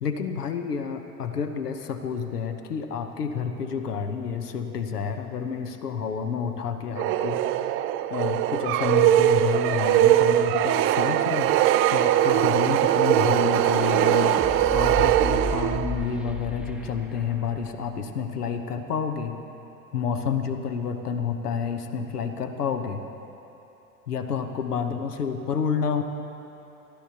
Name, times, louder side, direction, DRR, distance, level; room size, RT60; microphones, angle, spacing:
voice 1, 0.0-7.7 8.1-19.4 19.9-23.0 24.1-26.0, left 6 dB, 80° left, 7 dB, 1.1 m, -29 dB
sound 1, 7.0-16.1, right 12 dB, 30° right, 0.4 m, -21 dB
sound 2, 13.0-17.9, equal, ahead, 0.8 m, -34 dB
29.5 x 13.5 x 2.9 m, 2.9 s
figure-of-eight pair, 80°, 46 cm